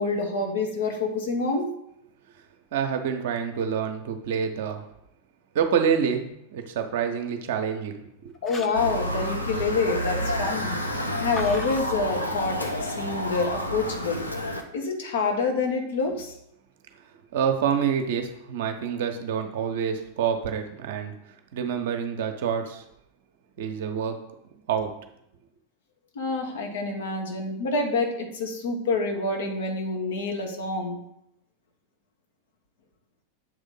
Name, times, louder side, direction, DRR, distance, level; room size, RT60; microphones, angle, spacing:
voice 1, 0.0-1.7 8.4-14.3 14.7-16.4 26.1-31.0, left 3 dB, 60° left, 2 dB, 1.3 m, -27 dB
voice 2, 2.7-4.8 5.5-6.2 6.5-8.0 8.2-8.3 17.3-21.1 21.5-22.8 23.6-24.2 24.7-24.9, right 7 dB, 55° right, 5 dB, 0.8 m, -27 dB
sound 1, 8.3-8.9 11.3-11.8, left 2 dB, 20° left, 0.6 m, -38 dB
Motor vehicle (road) / Siren, 8.7-14.6, equal, 85° left, 0.7 m, -29 dB
7.6 x 3.6 x 5.3 m, 0.78 s
figure-of-eight pair, 90°, 0 cm